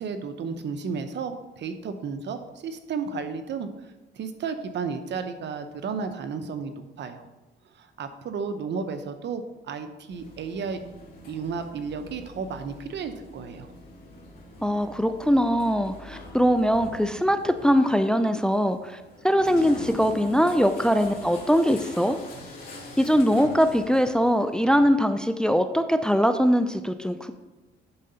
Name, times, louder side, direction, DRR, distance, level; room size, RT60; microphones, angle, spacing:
voice 1, 0.0-3.7 4.1-7.2 7.8-10.8 11.3-13.7, right 5 dB, 65° right, 8 dB, 0.9 m, -33 dB
sound 1, 10.1-25.0, left 2 dB, 45° left, 3.0 m, -43 dB
voice 2, 14.6-19.0 19.2-22.2 23.0-27.3, equal, 5° left, 9 dB, 0.5 m, -22 dB
9.9 x 3.8 x 5.6 m, 1.1 s
cardioid pair, 90°, 20 cm